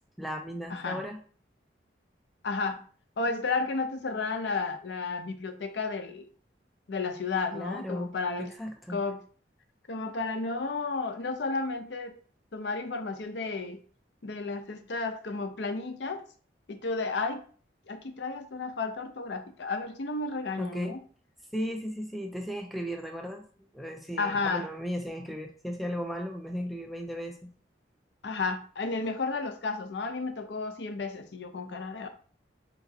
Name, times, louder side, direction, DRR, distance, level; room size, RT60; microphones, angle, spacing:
voice 1, 0.2-1.2 7.5-8.1 8.4-9.0 20.6-21.0 21.5-23.4 23.7-27.5, equal, ahead, 2 dB, 0.5 m, -35 dB
voice 2, 0.7-1.0 2.4-2.8 3.2-6.3 6.9-8.5 8.9-9.2 9.9-12.2 12.5-13.8 14.2-16.2 16.7-17.4 17.9-21.0 24.2-24.7 28.2-32.1, left 3 dB, 70° left, 8 dB, 0.6 m, -32 dB
4.8 x 2.9 x 2.7 m, 0.43 s
head